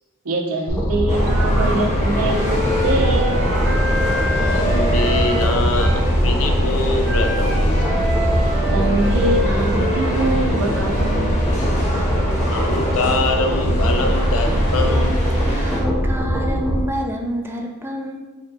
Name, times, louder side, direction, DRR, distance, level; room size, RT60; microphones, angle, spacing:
voice 1, 0.2-3.4 8.6-11.3, right 2 dB, 90° right, 1 dB, 0.7 m, -23 dB
sound 1, 0.7-16.8, equal, 5° left, 0.8 m, -20 dB
sound 2, 1.1-15.8, equal, 35° left, 0.9 m, -27 dB
Wind instrument woodwind instrument, 2.0-6.1 7.0-10.4, equal, 40° right, 1.0 m, -28 dB
voice 2, 4.5-7.9 12.5-15.2, left 3 dB, 70° left, 5 dB, 0.5 m, -24 dB
voice 3, 15.4-18.2, equal, 10° right, 1 dB, 0.4 m, -27 dB
4.4 x 2.3 x 3.9 m, 1.2 s
head